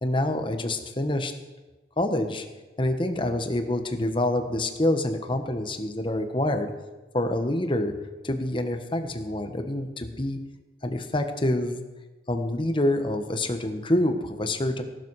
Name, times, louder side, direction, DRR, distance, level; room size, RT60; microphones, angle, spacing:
voice 1, 0.0-1.3 2.0-2.4 2.8-6.7 7.1-7.9 8.2-10.4 10.8-11.8 12.3-14.8, left 1 dB, 30° left, 7 dB, 1.2 m, -26 dB
16.5 x 12.0 x 4.8 m, 1.2 s
head